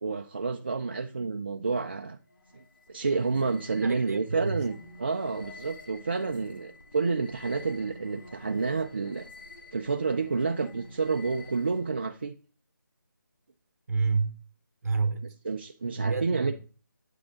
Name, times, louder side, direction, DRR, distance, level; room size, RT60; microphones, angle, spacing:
voice 1, 0.0-2.2 2.5-9.3 9.7-12.4 15.4-16.5, right 4 dB, 30° right, 0.3 m, -29 dB
sound 1, 2.2-12.0, left 2 dB, 70° left, 1.8 m, -50 dB
voice 2, 3.8-4.6 13.9-14.4 14.8-15.3 15.9-16.5, right 4 dB, 45° right, 1.1 m, -29 dB
8.4 x 4.9 x 3.7 m
figure-of-eight pair, 170°, 11 cm